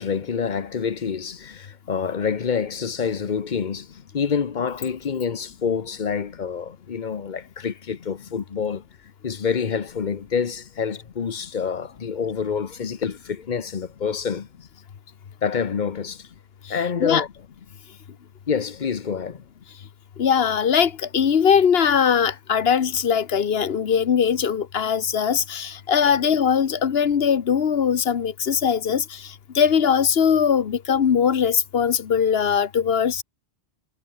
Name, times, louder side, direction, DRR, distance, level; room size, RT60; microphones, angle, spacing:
voice 1, 0.0-3.9 4.1-8.8 9.2-14.5 15.4-16.2 16.7-17.3 18.5-19.4, left 6 dB, 45° left, 1.0 m, -27 dB
voice 2, 20.2-29.0 29.5-33.2, left 7 dB, 65° left, 1.2 m, -20 dB
omnidirectional pair, 1.1 m